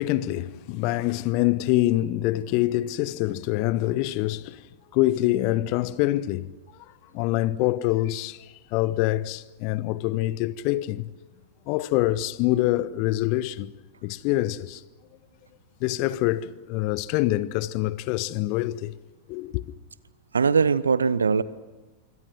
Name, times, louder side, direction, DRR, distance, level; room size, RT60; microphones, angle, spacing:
voice 1, 0.0-4.6 4.9-6.5 7.1-8.4 8.7-11.1 11.7-13.7 14.0-14.8 15.8-18.9 19.3-19.6, left 16 dB, 45° left, 0.9 m, -25 dB
voice 2, 20.3-21.4, right 5 dB, 75° right, 0.9 m, -21 dB
27.0 x 24.0 x 6.1 m
figure-of-eight pair, 90°, 0 cm